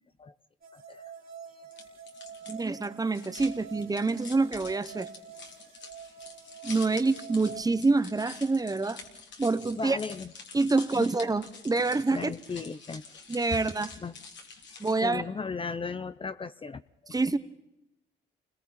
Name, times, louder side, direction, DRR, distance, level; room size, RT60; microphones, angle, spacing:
sound 1, 0.6-7.6, right 7 dB, 50° right, 2.8 m, -47 dB
voice 1, 0.7-1.1 1.6-1.7 9.7-10.3 10.9-11.1 12.1-13.0 14.0-14.1 14.7-17.2, left 5 dB, 25° left, 13 dB, 0.6 m, -37 dB
sound 2, 1.7-15.1, left 4 dB, 65° left, 3.4 m, -47 dB
voice 2, 2.5-5.1 6.6-9.0 9.4-10.0 10.5-12.3 13.3-13.9 14.8-15.2 17.1-17.4, right 3 dB, 20° right, 12 dB, 1.1 m, -26 dB
29.0 x 21.0 x 4.3 m, 0.86 s
cardioid pair, 90°, 20 cm